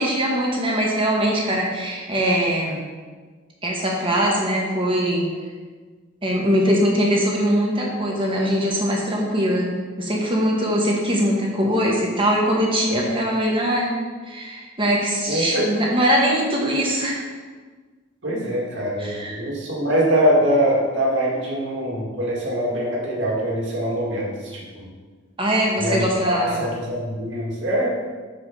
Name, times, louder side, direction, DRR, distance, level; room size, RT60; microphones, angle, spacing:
voice 1, 0.0-2.8 3.6-5.3 6.2-9.7 10.0-13.9 14.3-17.2 19.0-19.4 25.4-26.6, equal, 25° right, -2 dB, 1.4 m, -21 dB
voice 2, 12.9-13.2 15.3-15.6 18.2-24.9 25.8-28.0, equal, 70° right, -4 dB, 2.2 m, -23 dB
5.8 x 5.1 x 5.9 m, 1.4 s
head